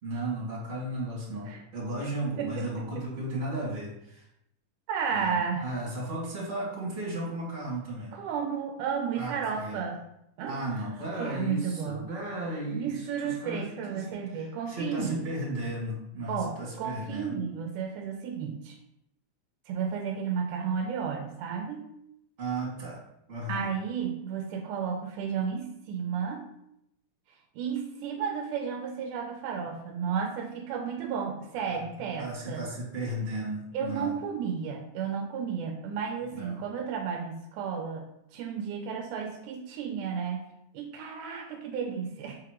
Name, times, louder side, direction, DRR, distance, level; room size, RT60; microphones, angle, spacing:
voice 1, 0.0-4.2 5.1-8.1 9.2-9.8 10.5-17.3 22.4-23.0 23.3-23.7 31.6-31.8 32.1-34.1 36.3-36.6, right 1 dB, 25° right, -5 dB, 2.2 m, -35 dB
voice 2, 2.4-3.1 4.9-5.7 8.1-10.0 10.4-10.8 11.2-12.1 12.7-15.3 16.3-18.8 19.7-21.9 23.5-26.4 27.6-32.6 33.7-38.0 38.3-40.4 40.7-42.4, right 6 dB, 80° right, 3 dB, 2.1 m, -33 dB
6.4 x 4.8 x 3.0 m, 0.79 s
omnidirectional pair, 3.6 m